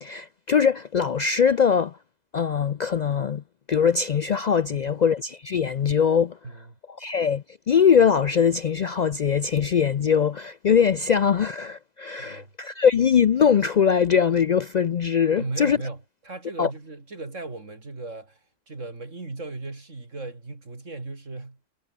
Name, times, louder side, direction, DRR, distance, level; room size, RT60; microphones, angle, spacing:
voice 1, 0.0-2.0 2.3-3.4 3.7-6.4 7.0-15.8 16.6-16.7, left 7 dB, 70° left, 0.4 m, -21 dB
voice 2, 6.4-6.7 12.2-12.5 15.4-18.4 18.7-21.6, right 3 dB, 70° right, 4.1 m, -37 dB
omnidirectional pair, 1.4 m